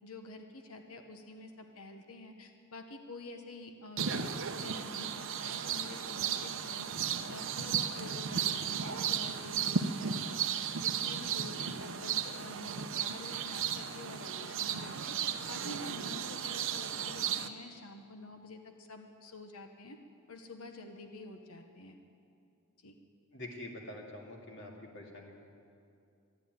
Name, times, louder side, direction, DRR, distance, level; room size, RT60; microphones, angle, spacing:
voice 1, 0.0-20.0 20.3-22.0 22.8-23.0, left 2 dB, 75° left, 5 dB, 1.1 m, -48 dB
sound 1, 4.0-17.5, right 7 dB, 60° right, 0.7 m, -35 dB
voice 2, 23.3-25.4, left 1 dB, 55° left, -1 dB, 2.5 m, -46 dB
14.0 x 10.5 x 9.4 m, 2.5 s
head